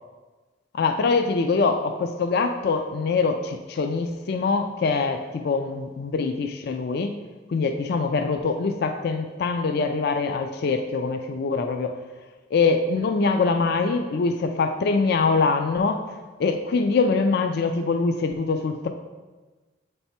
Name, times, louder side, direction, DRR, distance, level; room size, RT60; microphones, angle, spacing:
voice 1, 0.7-7.2 7.5-12.0 12.5-18.9, left 4 dB, 55° left, 6 dB, 0.4 m, -24 dB
8.1 x 3.4 x 4.2 m, 1.3 s
head